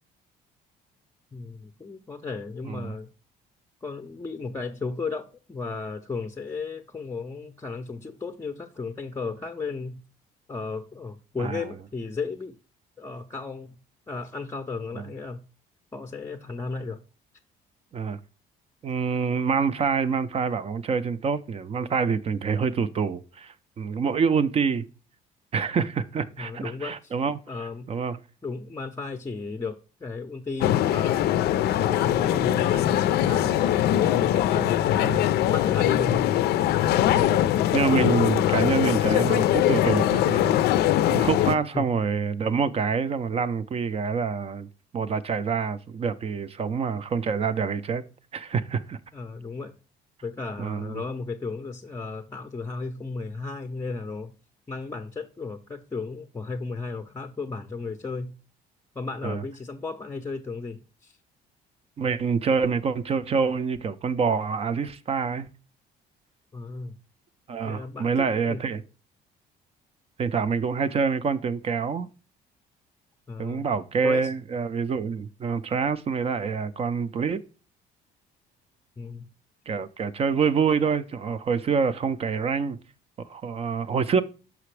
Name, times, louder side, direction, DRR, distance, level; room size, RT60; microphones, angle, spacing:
voice 1, 1.3-3.1 3.8-10.0 10.5-12.6 13.0-13.8 14.1-15.4 15.9-17.0 26.4-27.1 27.5-27.9 28.4-31.4 31.8-35.2 35.5-36.3 41.7-41.9 49.1-49.8 50.2-54.3 54.7-58.3 59.0-61.2 66.5-66.9 67.6-68.6 73.3-73.7 74.0-74.3 79.0-79.3, left 4 dB, 15° left, 0.5 m, -34 dB
voice 2, 18.8-24.9 25.5-27.4 27.9-28.2 34.5-34.7 35.0-35.2 37.0-37.4 37.7-40.5 41.0-44.7 44.9-48.0 48.3-49.0 50.6-51.0 59.2-59.4 62.0-65.5 67.5-68.8 70.2-72.1 73.4-77.4 79.7-82.8 83.2-84.2, right 5 dB, 35° right, 0.5 m, -26 dB
sound 1, 30.6-41.6, left 12 dB, 70° left, 0.4 m, -22 dB
5.9 x 5.6 x 3.2 m
cardioid pair, 110°, 17 cm